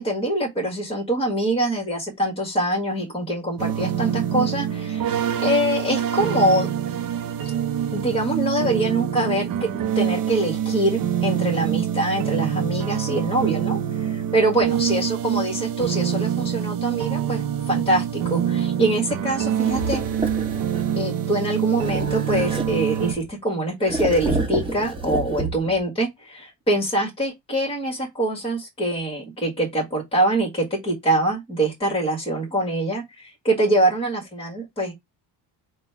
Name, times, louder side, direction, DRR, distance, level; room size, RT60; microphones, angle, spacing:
voice 1, 0.0-6.7 7.9-20.0 20.9-34.9, right 1 dB, 15° left, 1.5 m, -24 dB
sound 1, 3.6-23.1, right 9 dB, 55° right, 0.7 m, -25 dB
sound 2, 19.6-21.0 21.8-23.3 23.8-25.8, right 2 dB, 10° right, 1.1 m, -29 dB
4.2 x 2.3 x 4.6 m
cardioid pair, 125°, 43 cm